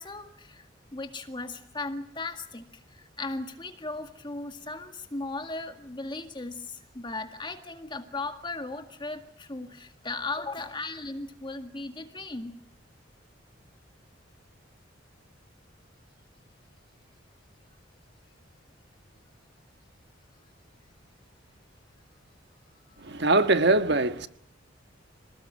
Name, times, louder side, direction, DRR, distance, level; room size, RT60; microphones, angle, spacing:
voice 1, 0.0-12.6 22.9-23.1, left 3 dB, 25° left, 1.9 m, -37 dB
voice 2, 23.0-24.3, right 2 dB, 60° right, 1.5 m, -22 dB
27.5 x 19.5 x 9.0 m
head